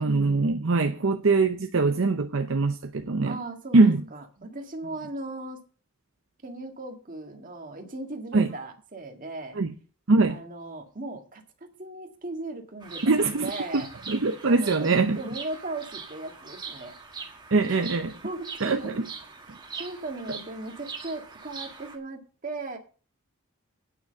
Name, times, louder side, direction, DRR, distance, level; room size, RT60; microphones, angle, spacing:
voice 1, 0.0-3.4 3.7-4.0 8.3-8.5 9.5-9.7 10.1-10.4 13.0-13.8 14.1-15.2 17.5-18.1 18.6-19.1, right 3 dB, 65° right, 0.7 m, -22 dB
voice 2, 3.2-5.6 6.4-9.6 10.3-11.4 11.8-13.9 14.5-17.0 17.7-17.9 18.2-18.9 19.7-22.8, right 2 dB, 40° right, 1.8 m, -37 dB
Bird vocalization bird call bird song, 12.8-22.0, right 5 dB, 20° right, 1.6 m, -42 dB
9.3 x 5.9 x 7.5 m
head